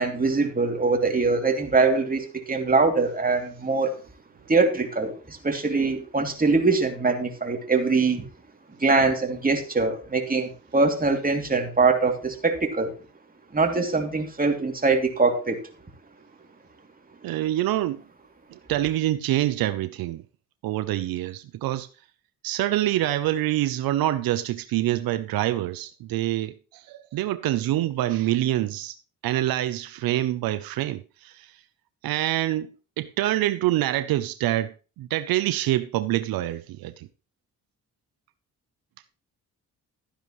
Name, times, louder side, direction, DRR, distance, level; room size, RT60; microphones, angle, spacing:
voice 1, 0.0-4.0 4.5-8.3 8.8-12.9 13.5-15.6, right 3 dB, 25° right, 2.8 m, -23 dB
voice 2, 17.2-18.0 18.5-20.2 20.6-21.9 22.4-29.0 29.2-31.6 32.0-37.1, right 14 dB, 90° right, 0.7 m, -26 dB
13.0 x 10.0 x 3.1 m
cardioid pair, 70°, 34 cm